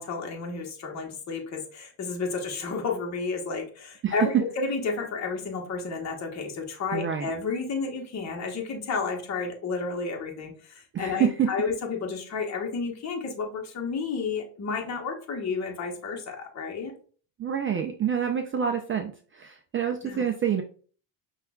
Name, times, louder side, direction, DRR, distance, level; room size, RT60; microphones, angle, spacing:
voice 1, 0.0-16.9 20.0-20.2, left 4 dB, 35° left, 1 dB, 1.0 m, -31 dB
voice 2, 6.9-7.3 10.9-11.5 17.4-20.6, right 8 dB, 30° right, 4 dB, 0.3 m, -27 dB
5.6 x 2.4 x 2.3 m, 0.42 s
supercardioid pair, 85°, 47 cm